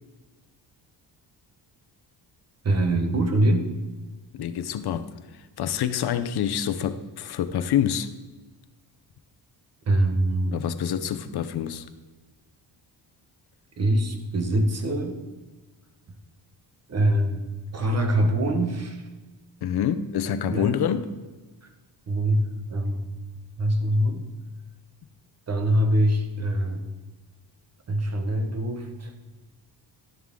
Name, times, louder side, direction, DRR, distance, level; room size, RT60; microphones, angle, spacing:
voice 1, 2.6-3.7 9.9-10.6 13.8-15.2 16.9-17.4 17.7-19.0 20.5-20.8 21.6-21.7 22.1-22.4 22.7-23.1 23.6-24.2 25.5-26.8 27.9-29.1, right 1 dB, 35° right, 6 dB, 1.4 m, -23 dB
voice 2, 4.3-5.1 5.6-8.1 10.5-11.9 19.6-21.1, left 9 dB, 65° left, 11 dB, 0.8 m, -26 dB
12.5 x 11.0 x 3.7 m, 1.2 s
cardioid pair, 160°, 42 cm